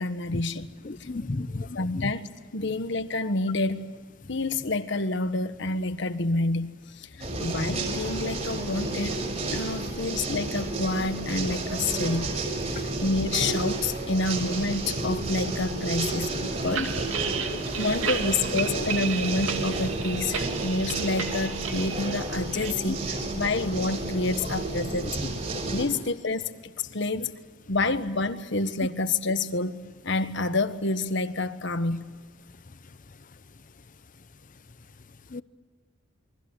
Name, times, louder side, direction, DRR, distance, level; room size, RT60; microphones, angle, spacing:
voice 1, 0.0-0.7 1.0-1.1 1.7-3.9 4.3-9.2 9.5-12.3 12.7-17.0 17.8-25.1 25.7-27.3 27.7-32.1, left 2 dB, 65° left, 1.4 m, -28 dB
voice 2, 0.8-2.1 16.6-16.9 17.5-17.7 18.7-18.8 25.5-25.6 35.3-35.4, left 2 dB, 40° left, 0.7 m, -33 dB
sound 1, 7.2-25.9, right 2 dB, 35° right, 5.6 m, -31 dB
sound 2, 16.6-22.7, right 6 dB, 80° right, 2.5 m, -33 dB
28.5 x 23.5 x 8.1 m
head